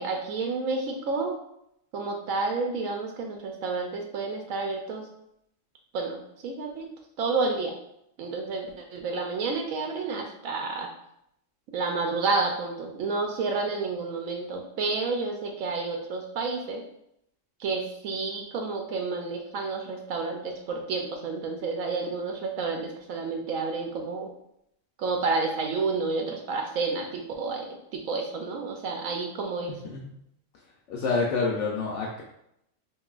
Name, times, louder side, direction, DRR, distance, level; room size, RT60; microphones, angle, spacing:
voice 1, 0.0-1.4 1.9-5.1 5.9-6.9 7.2-7.7 8.2-10.9 11.7-16.8 17.6-24.3 25.0-27.7 27.9-29.7, right 3 dB, 85° right, 3 dB, 1.0 m, -30 dB
voice 2, 29.7-30.1 30.9-32.2, left 4 dB, 70° left, -2 dB, 0.9 m, -28 dB
5.4 x 2.6 x 2.4 m, 0.77 s
omnidirectional pair, 1.4 m